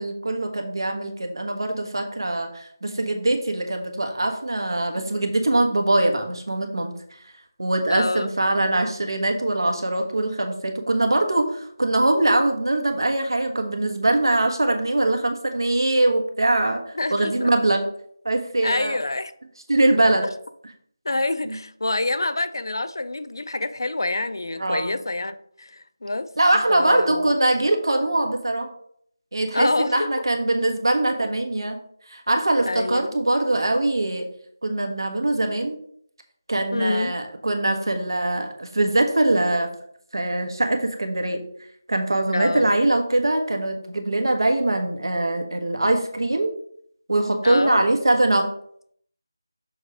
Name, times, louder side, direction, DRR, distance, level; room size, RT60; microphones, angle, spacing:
voice 1, 0.0-6.9 7.6-17.9 18.2-19.0 19.7-20.3 21.4-21.5 24.6-25.0 26.4-28.7 29.3-31.8 32.1-34.3 34.6-35.8 36.5-39.7 40.1-41.4 41.9-46.5 47.1-48.5, right 2 dB, 90° right, 1.3 m, -22 dB
voice 2, 7.9-8.3 17.0-17.5 18.6-19.3 19.9-20.0 21.0-26.3 26.7-27.4 29.5-30.1 32.7-33.2 36.7-37.2 42.3-42.7 47.4-47.8, left 2 dB, 75° left, 0.5 m, -26 dB
6.3 x 3.3 x 4.9 m
figure-of-eight pair, 175°, 2 cm